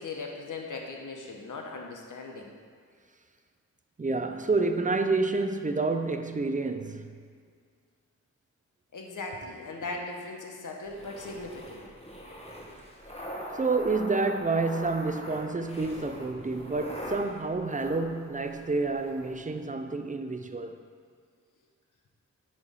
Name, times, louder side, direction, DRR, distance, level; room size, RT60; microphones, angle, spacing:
voice 1, 0.0-2.5 8.9-11.8, left 3 dB, 70° left, 1.0 m, -39 dB
voice 2, 4.0-7.0 13.5-20.8, right 3 dB, 25° right, 0.5 m, -29 dB
sound 1, 10.9-19.3, equal, 20° left, 1.3 m, -43 dB
8.6 x 3.2 x 5.5 m
cardioid pair, 60°, 31 cm